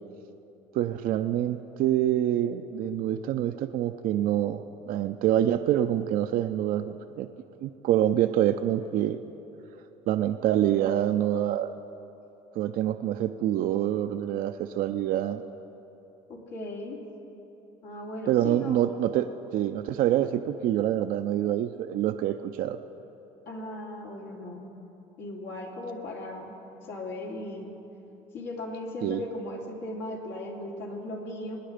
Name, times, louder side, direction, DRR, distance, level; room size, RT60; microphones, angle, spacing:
voice 1, 0.7-4.6 4.9-7.3 7.6-9.2 10.1-11.7 12.6-15.4 18.3-22.8 29.0-29.2, right 11 dB, 65° right, 7 dB, 0.5 m, -26 dB
voice 2, 16.3-17.0 17.8-18.8 23.5-24.7 25.2-26.5 26.9-27.7 28.3-31.6, left 1 dB, 75° left, -1 dB, 2.6 m, -37 dB
24.0 x 9.9 x 5.1 m, 3.0 s
supercardioid pair, 75°, 15 cm